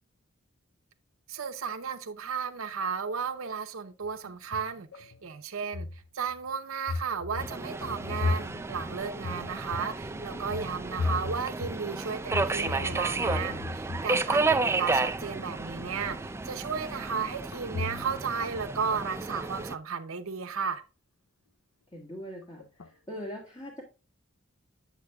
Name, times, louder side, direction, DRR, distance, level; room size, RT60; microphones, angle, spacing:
voice 1, 1.3-5.9 6.1-20.8, right 6 dB, 85° right, 0.7 m, -34 dB
sound 1, 4.0-5.2 5.6-6.5 6.9-14.1 14.3-14.8 17.5-18.3 18.5-19.5 22.6-22.9 23.2-23.3, left 3 dB, 85° left, 0.7 m, -36 dB
Subway metro underground, 7.4-19.8, right 3 dB, 15° right, 0.4 m, -32 dB
voice 2, 21.9-22.7 23.1-23.8, equal, 20° left, 1.6 m, -40 dB
8.3 x 7.3 x 2.3 m
head